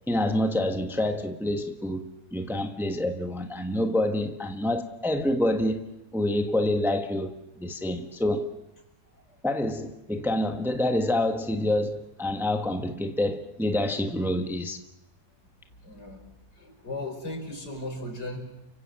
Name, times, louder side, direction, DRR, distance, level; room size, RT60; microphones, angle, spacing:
voice 1, 0.1-8.5 9.4-14.8, left 1 dB, ahead, 1.3 m, -27 dB
voice 2, 15.8-16.2 16.5-18.4, left 1 dB, 85° left, 5.8 m, -37 dB
30.0 x 24.5 x 7.7 m
omnidirectional pair, 1.8 m